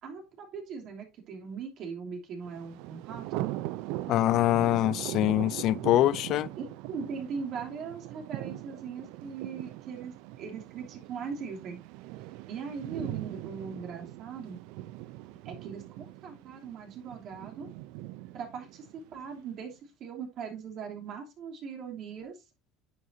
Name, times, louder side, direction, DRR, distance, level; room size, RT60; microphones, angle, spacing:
voice 1, 0.0-3.4 6.6-11.8 12.5-14.6 15.4-17.7 18.3-18.9 19.1-22.4, right 6 dB, 55° right, 3.0 m, -40 dB
Thunder, 2.5-19.4, right 16 dB, 80° right, 0.5 m, -41 dB
voice 2, 4.1-6.5, left 14 dB, 60° left, 0.4 m, -24 dB
9.7 x 8.0 x 2.7 m
supercardioid pair, 115°, 0 cm